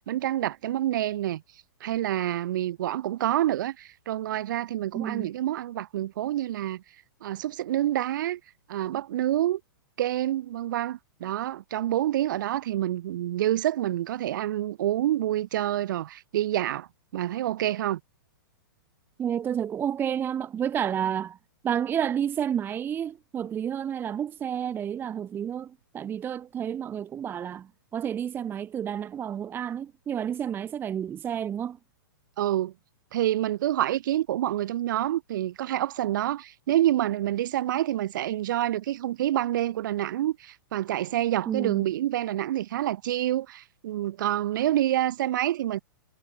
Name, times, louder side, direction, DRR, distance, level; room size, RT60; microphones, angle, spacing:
voice 1, 0.0-1.4 1.8-6.8 7.2-8.4 8.7-9.6 10.0-16.9 17.1-18.0 32.4-32.7 33.1-45.8, right 13 dB, 60° right, 0.9 m, -27 dB
voice 2, 4.9-5.3 19.2-21.4 21.6-31.8 41.5-41.9, right 9 dB, 20° right, 0.7 m, -30 dB
hypercardioid pair, 125°, 12 cm